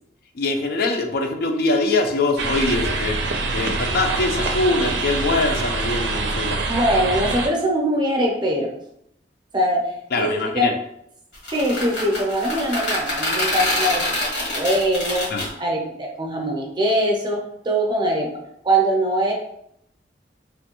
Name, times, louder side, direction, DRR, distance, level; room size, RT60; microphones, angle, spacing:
voice 1, 0.3-3.2 3.5-6.6 10.1-10.7 15.3-15.5, left 2 dB, 60° left, 4 dB, 0.4 m, -23 dB
sound 1, 2.4-7.5, right 3 dB, 85° right, 0.4 m, -25 dB
voice 2, 6.7-8.7 9.5-9.9 10.2-10.7 11.5-15.3 15.6-18.3 18.6-19.3, right 1 dB, 25° right, 0 dB, 0.6 m, -22 dB
sound 2, 11.3-15.5, left 1 dB, 75° left, 1.4 m, -25 dB
3.1 x 2.2 x 2.9 m, 0.75 s
head